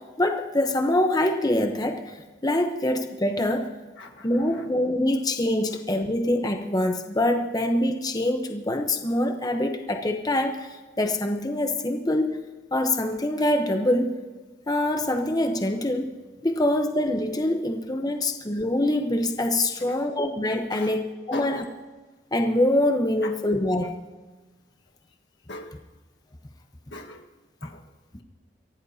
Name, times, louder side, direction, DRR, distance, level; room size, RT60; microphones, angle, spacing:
voice 1, 0.0-3.7 4.2-12.4 12.7-14.2 14.7-16.1 16.4-21.6 22.3-23.9, left 1 dB, 20° left, 4 dB, 0.9 m, -24 dB
voice 2, 4.0-4.7 19.8-20.1 20.7-21.0 21.3-21.7 23.2-23.3 25.5-25.8 26.9-27.2 27.6-27.8, left 2 dB, 75° left, 3 dB, 1.5 m, -39 dB
24.0 x 16.5 x 2.8 m, 1.3 s
head